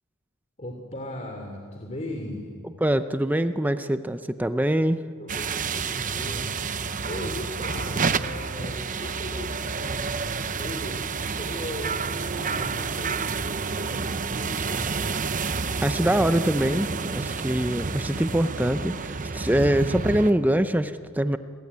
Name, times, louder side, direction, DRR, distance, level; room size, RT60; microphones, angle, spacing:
voice 1, 0.6-2.5 5.2-6.5 7.1-15.1, left 1 dB, 35° left, 2 dB, 2.9 m, -38 dB
voice 2, 2.8-5.0 15.8-21.4, right 1 dB, 10° right, 10 dB, 0.6 m, -24 dB
sound 1, 5.3-20.3, right 5 dB, 35° right, 0.8 m, -29 dB
29.5 x 21.0 x 9.5 m, 2.2 s
head